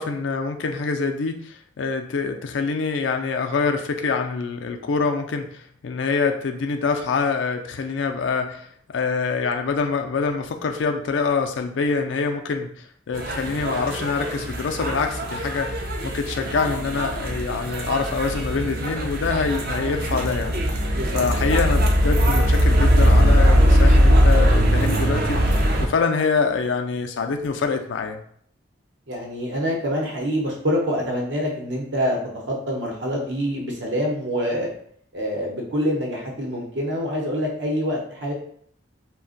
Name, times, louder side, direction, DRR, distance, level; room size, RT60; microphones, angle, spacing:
voice 1, 0.0-8.7 8.9-20.6 21.1-28.2, left 4 dB, 85° left, 5 dB, 0.4 m, -25 dB
sound 1, 13.1-25.9, equal, 50° right, 0.5 m, -20 dB
voice 2, 29.1-34.7 35.1-38.3, equal, 75° right, -1 dB, 0.9 m, -26 dB
2.5 x 2.2 x 3.8 m, 0.62 s
head